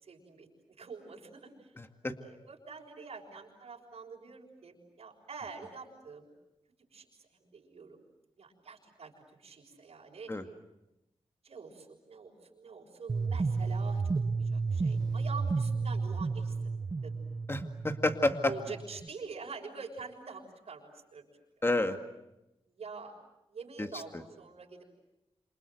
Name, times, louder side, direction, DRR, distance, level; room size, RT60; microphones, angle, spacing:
voice 1, 0.0-1.7 2.2-6.3 6.9-7.1 7.3-8.0 8.4-10.3 11.4-16.7 17.0-17.1 18.4-21.3 22.7-23.1 23.5-24.8, right 4 dB, 70° right, 0 dB, 6.6 m, -46 dB
voice 2, 1.8-2.1 10.3-10.4 17.5-18.5 21.6-22.0 23.8-24.2, left 2 dB, 20° left, 7 dB, 2.2 m, -30 dB
sound 1, 13.1-19.1, right 4 dB, 35° right, 0.9 m, -32 dB
27.5 x 27.0 x 8.0 m, 0.90 s
wide cardioid pair, 100°, 11 cm